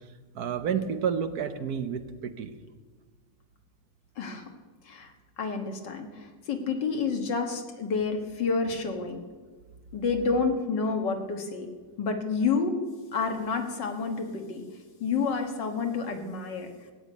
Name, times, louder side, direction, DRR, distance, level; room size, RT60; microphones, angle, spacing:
voice 1, 0.3-2.5, right 7 dB, 60° right, 9 dB, 1.3 m, -30 dB
voice 2, 5.4-9.2 9.9-11.7 12.0-12.8 13.1-14.6 15.0-16.7, left 4 dB, 65° left, 4 dB, 2.2 m, -29 dB
16.0 x 8.8 x 8.5 m, 1.4 s
omnidirectional pair, 2.1 m